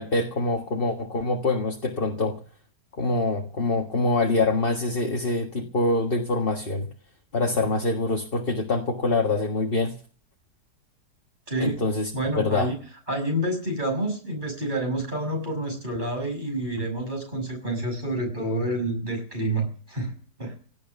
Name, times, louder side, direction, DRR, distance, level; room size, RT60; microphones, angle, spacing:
voice 1, 0.0-2.4 3.0-6.9 7.3-9.9 11.6-12.7, left 2 dB, 35° left, 2 dB, 1.8 m, -25 dB
voice 2, 11.5-11.8 12.1-12.8 13.1-20.1 20.4-20.5, right 1 dB, 25° right, 3 dB, 6.7 m, -28 dB
17.5 x 11.0 x 6.9 m, 0.43 s
omnidirectional pair, 1.8 m